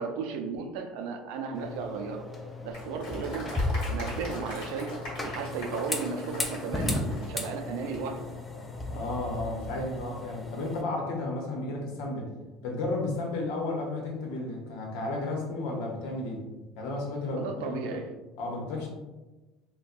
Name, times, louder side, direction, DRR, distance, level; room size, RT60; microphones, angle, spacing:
voice 1, 0.0-2.3 2.6-8.2 17.4-18.1, right 5 dB, 75° right, 5 dB, 0.4 m, -35 dB
sound 1, 1.5-10.8, left 2 dB, 10° left, 0.3 m, -35 dB
Applause, 2.7-8.2, left 1 dB, 55° left, 1.4 m, -42 dB
voice 2, 8.9-12.3 12.6-16.4 16.8-18.0 18.4-18.9, left 2 dB, 80° left, 0 dB, 0.9 m, -33 dB
4.0 x 2.1 x 2.5 m, 1.1 s
cardioid pair, 170°, 0 cm